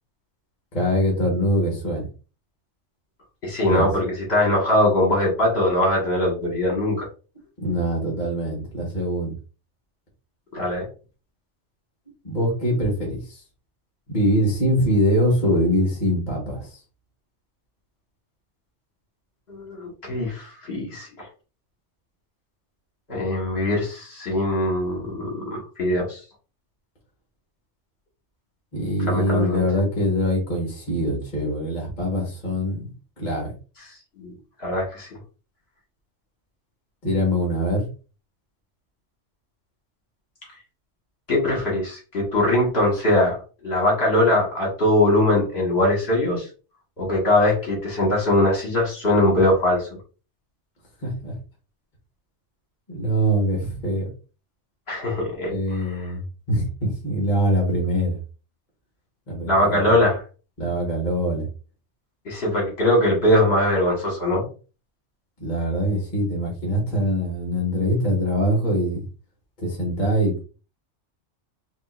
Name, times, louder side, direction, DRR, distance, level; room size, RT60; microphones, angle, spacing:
voice 1, 0.7-2.1 3.7-3.9 7.6-9.3 12.2-13.4 14.1-16.8 28.7-33.5 37.0-37.8 51.0-51.3 52.9-54.1 55.5-56.2 56.5-58.2 59.3-59.8 60.6-61.5 65.4-69.0 69.6-70.4, equal, 35° left, -2 dB, 1.6 m, -23 dB
voice 2, 3.4-7.1 10.5-10.9 19.5-21.3 23.1-26.2 29.1-29.6 34.2-35.1 41.3-43.4 43.6-46.5 47.0-49.9 54.9-55.8 59.5-60.2 62.3-64.4, left 1 dB, 55° left, -2 dB, 2.0 m, -21 dB
5.3 x 2.8 x 2.5 m, 0.34 s
omnidirectional pair, 1.3 m